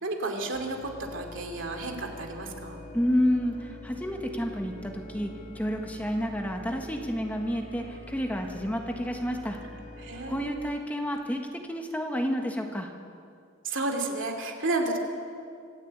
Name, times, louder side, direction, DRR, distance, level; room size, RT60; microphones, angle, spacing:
voice 1, 0.0-2.8 10.0-10.7 13.6-15.0, right 2 dB, 65° right, 3 dB, 2.8 m, -32 dB
sound 1, 0.5-10.5, equal, 40° left, 6.0 m, -44 dB
voice 2, 2.9-9.6 10.3-12.9, equal, 10° left, 2 dB, 1.5 m, -30 dB
25.5 x 12.0 x 8.9 m, 2.3 s
head